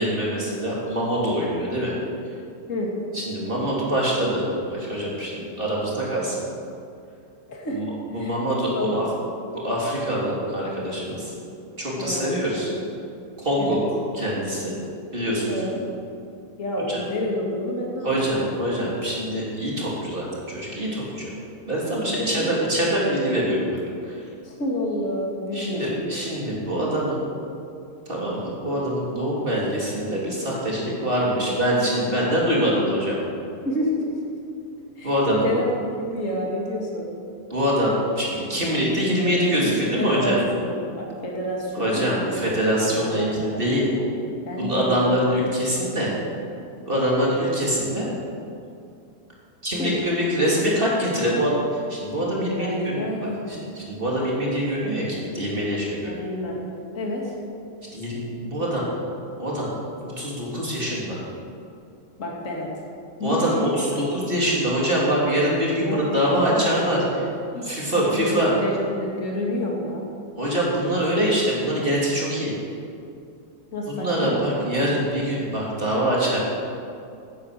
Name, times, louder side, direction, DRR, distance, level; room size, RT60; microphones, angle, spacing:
voice 1, 0.0-1.9 3.1-6.4 7.7-7.8 8.1-9.0 9.6-11.3 11.8-12.7 13.4-14.7 15.1-15.7 16.9-17.0 18.0-21.3 21.7-23.8 24.0-24.2 25.5-27.2 28.1-33.2 35.0-35.5 37.5-40.4 41.8-43.9 44.6-46.1 46.9-48.1 49.6-53.1 53.5-56.1 57.9-58.8 59.4-59.7 60.0-61.2 63.2-67.0 67.6-68.5 70.4-72.5 73.9-76.4, equal, 15° right, -5 dB, 2.1 m, -24 dB
voice 2, 7.5-7.8 8.1-8.3 8.7-9.2 12.0-12.8 13.6-13.8 15.5-15.8 16.6-18.6 22.2-22.5 24.4-26.2 33.6-34.0 34.9-35.6 35.9-37.1 39.2-44.2 44.4-45.0 49.8-49.9 52.6-53.7 56.0-56.6 56.9-57.3 62.2-62.7 63.2-63.7 65.8-66.7 67.1-67.3 67.5-70.0 73.7-74.5 74.8-74.9, left 1 dB, 35° left, -2 dB, 1.2 m, -29 dB
16.5 x 9.7 x 6.8 m, 2.5 s
omnidirectional pair, 5.5 m